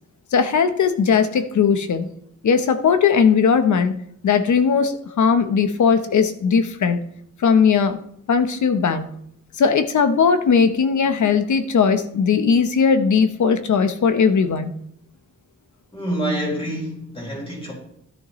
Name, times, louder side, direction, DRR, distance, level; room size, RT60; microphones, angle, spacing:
voice 1, 0.3-2.1 2.4-3.9 4.2-7.0 7.4-8.0 8.3-9.1 9.6-14.7, left 6 dB, 70° left, 1.0 m, -18 dB
voice 2, 15.9-17.7, right 1 dB, 15° left, 4.1 m, -27 dB
13.0 x 11.0 x 3.1 m
wide cardioid pair, 175°, 31 cm